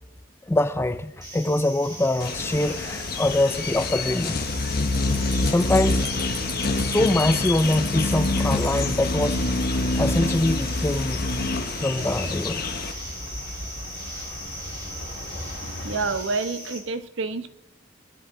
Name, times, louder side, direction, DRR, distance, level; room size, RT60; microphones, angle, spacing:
voice 1, 0.5-4.4 5.4-6.1 6.7-9.4 9.8-11.2 11.8-12.6, left 1 dB, 10° left, 11 dB, 0.4 m, -24 dB
sound 1, 1.2-16.8, equal, 20° right, 3.0 m, -38 dB
sound 2, 2.2-12.9, left 3 dB, 50° left, 0.9 m, -26 dB
sound 3, 5.5-16.1, left 1 dB, 75° left, 3.1 m, -40 dB
voice 2, 15.6-17.5, right 4 dB, 65° right, 11 dB, 0.8 m, -28 dB
20.0 x 10.5 x 3.8 m, 0.86 s
head